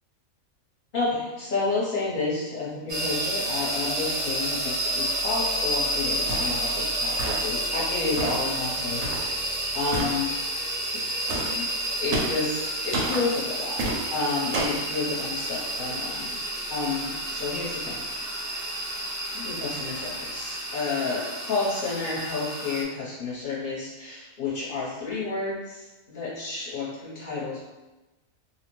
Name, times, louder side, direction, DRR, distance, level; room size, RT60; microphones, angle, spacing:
voice 1, 0.9-9.1 9.7-10.2 11.3-11.7 12.0-13.8 14.1-16.4 16.7-18.1 19.3-27.6, left 3 dB, 45° left, -7 dB, 0.8 m, -30 dB
sound 1, 2.9-22.8, right 1 dB, 55° right, 0.7 m, -30 dB
sound 2, 6.3-6.6 7.2-7.6 8.2-8.5 9.0-9.3 9.9-10.2 11.3-11.5 12.1-12.4 12.9-13.2 13.8-14.0 14.5-14.8, right 2 dB, 85° right, 1.0 m, -29 dB
2.5 x 2.1 x 3.0 m, 1.1 s
omnidirectional pair, 1.4 m